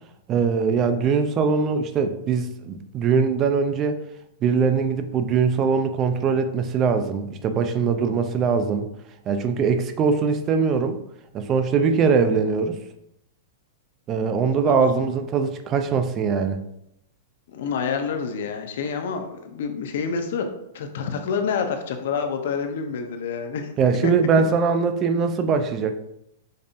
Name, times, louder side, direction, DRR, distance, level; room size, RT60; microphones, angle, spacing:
voice 1, 0.3-4.0 4.4-8.9 9.3-11.0 11.3-12.8 14.1-16.6 23.8-26.0, right 5 dB, 25° right, 8 dB, 0.3 m, -22 dB
voice 2, 17.5-20.4 20.7-23.7 24.0-24.1, left 6 dB, 70° left, 6 dB, 0.6 m, -28 dB
5.2 x 2.6 x 2.5 m, 0.79 s
supercardioid pair, 155°, 0 cm